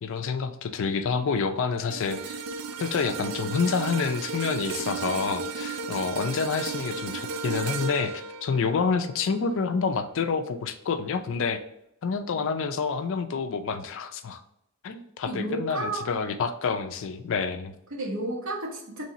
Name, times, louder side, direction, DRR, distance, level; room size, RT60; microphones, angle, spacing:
voice 1, 0.0-2.4 2.8-8.1 8.4-11.6 12.0-14.4 14.8-17.7, left 5 dB, 65° left, 9 dB, 0.4 m, -28 dB
sound 1, 1.9-10.3 10.7-10.9, right 4 dB, 80° right, 0.4 m, -34 dB
voice 2, 15.2-16.1 17.9-19.0, right 2 dB, 65° right, -1 dB, 1.0 m, -32 dB
3.2 x 2.8 x 4.0 m, 0.76 s
head